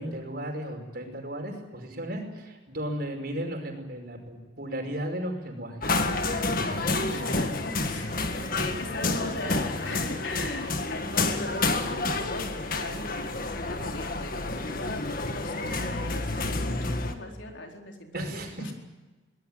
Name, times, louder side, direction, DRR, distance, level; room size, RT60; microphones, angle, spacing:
voice 1, 0.0-5.9 6.6-7.4 18.1-18.5, right 1 dB, 50° right, 3 dB, 5.5 m, -35 dB
sound 1, 5.8-17.1, left 3 dB, 45° left, 1.9 m, -29 dB
voice 2, 6.7-18.7, left 2 dB, 75° left, 2 dB, 4.4 m, -38 dB
24.0 x 19.5 x 9.2 m, 1.2 s
head